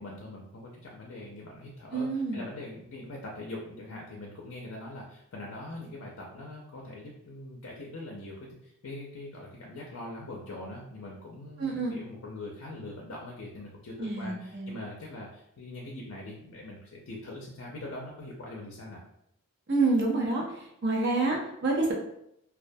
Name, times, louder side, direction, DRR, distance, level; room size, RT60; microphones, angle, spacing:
voice 1, 0.0-19.0, left 2 dB, 65° left, -2 dB, 0.4 m, -42 dB
voice 2, 1.9-2.4 11.6-11.9 14.0-14.8 19.7-20.4 20.8-21.9, right 3 dB, 50° right, -1 dB, 0.6 m, -27 dB
2.2 x 2.1 x 2.5 m, 0.78 s
head